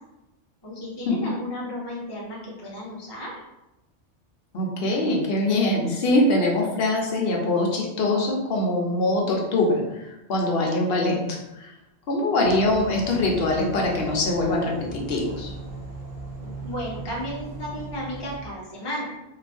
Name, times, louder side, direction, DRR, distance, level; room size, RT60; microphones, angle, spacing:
voice 1, 0.6-3.3 16.6-19.1, equal, 25° left, -5 dB, 0.7 m, -33 dB
voice 2, 4.5-11.7 12.1-15.5, left 2 dB, 60° left, 0 dB, 0.8 m, -23 dB
sound 1, 12.4-18.4, right 1 dB, 40° right, 0.6 m, -38 dB
2.5 x 2.5 x 3.3 m, 0.96 s
omnidirectional pair, 1.2 m